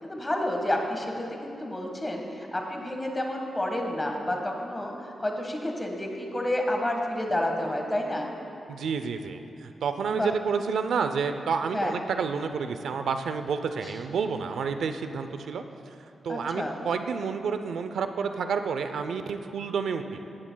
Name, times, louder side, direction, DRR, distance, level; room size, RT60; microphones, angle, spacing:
voice 1, 0.0-8.3 10.1-10.3 11.7-11.9 13.8-13.9 16.3-16.8, left 1 dB, 15° left, 1 dB, 1.5 m, -30 dB
voice 2, 8.7-15.6 16.2-20.2, right 5 dB, 90° right, 8 dB, 0.5 m, -29 dB
17.5 x 13.5 x 2.3 m, 2.7 s
wide cardioid pair, 125°, 0 cm